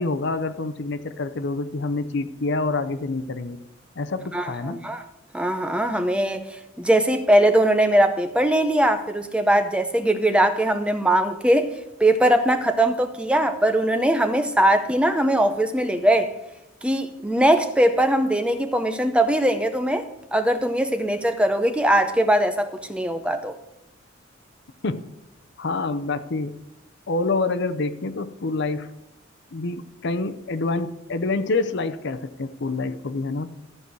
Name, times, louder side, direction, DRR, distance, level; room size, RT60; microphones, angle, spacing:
voice 1, 0.0-3.6 4.0-4.8 24.8-25.1 25.6-26.5 27.1-28.9 29.5-33.5, left 3 dB, 60° left, 0.7 m, -27 dB
voice 2, 4.3-5.0 5.3-6.4 6.8-11.7 12.0-16.3 16.8-20.0 20.3-23.5, right 1 dB, 5° right, 0.7 m, -20 dB
13.5 x 4.7 x 8.3 m
head